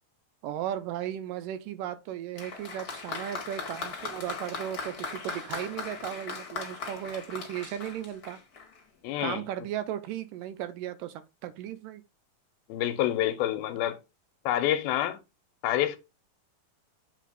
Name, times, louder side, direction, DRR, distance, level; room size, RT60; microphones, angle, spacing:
voice 1, 0.4-8.4 9.2-12.0, right 11 dB, 80° right, 2.1 m, -36 dB
Applause, 2.3-8.8, left 4 dB, 45° left, 1.2 m, -38 dB
voice 2, 9.0-9.4 12.7-14.0 14.5-15.2 15.6-16.0, left 12 dB, 90° left, 2.7 m, -27 dB
7.5 x 3.8 x 5.1 m
omnidirectional pair, 4.2 m